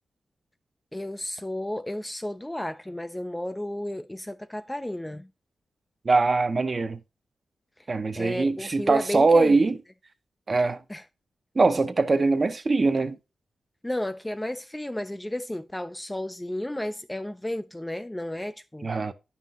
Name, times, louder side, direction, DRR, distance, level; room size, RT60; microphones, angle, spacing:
voice 1, 0.9-5.3 7.8-7.9 8.1-9.6 10.9-11.0 13.8-18.9, left 1 dB, 10° left, 0.3 m, -33 dB
voice 2, 6.0-7.0 7.9-9.7 10.5-10.8 11.6-13.2 18.8-19.1, right 3 dB, 35° right, 0.6 m, -22 dB
10.0 x 5.5 x 2.8 m
wide cardioid pair, 135°, 0 cm